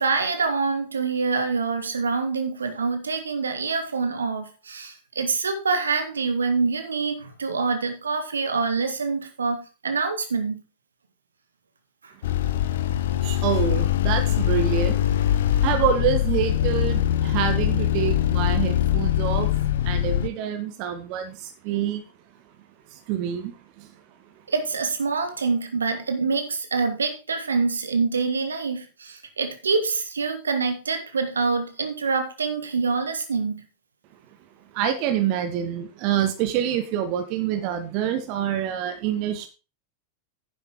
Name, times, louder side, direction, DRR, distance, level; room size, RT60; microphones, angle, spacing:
voice 1, 0.0-10.6 12.0-12.1 24.5-33.6, right 4 dB, 70° right, 1.7 m, -26 dB
sound 1, 12.2-20.3, left 11 dB, 60° left, 0.8 m, -23 dB
voice 2, 13.2-15.0 15.6-19.5 19.8-21.4 21.6-22.0 23.1-23.5 34.7-39.5, right 9 dB, 45° right, 1.4 m, -26 dB
10.0 x 7.5 x 4.5 m
figure-of-eight pair, 90°, 0 cm